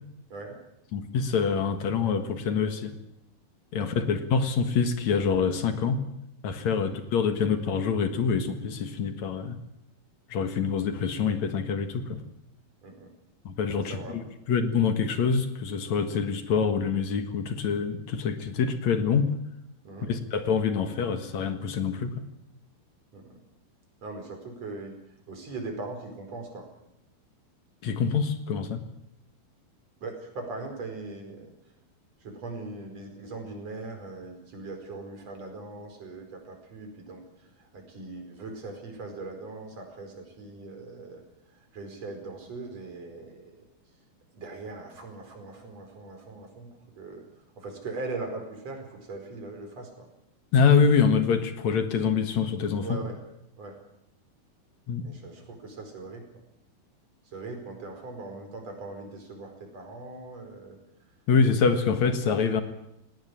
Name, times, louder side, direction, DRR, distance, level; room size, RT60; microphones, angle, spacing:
voice 1, 0.9-2.9 3.7-6.0 6.4-9.6 10.3-12.2 13.4-19.3 20.1-22.1 27.8-28.8 50.5-53.0 54.9-55.0 61.3-62.6, left 5 dB, 55° left, 8 dB, 2.4 m, -25 dB
voice 2, 3.7-4.1 6.6-6.8 12.8-13.1 13.8-14.2 19.8-20.1 23.1-23.4 24.0-25.0 25.3-26.7 30.0-31.5 32.2-41.2 41.5-43.7 44.3-46.7 47.0-47.2 47.6-50.1 52.8-53.2 53.6-53.8 55.0-56.4 57.3-60.8, right 3 dB, 40° right, 3 dB, 5.9 m, -40 dB
19.0 x 18.5 x 10.0 m, 0.82 s
omnidirectional pair, 4.6 m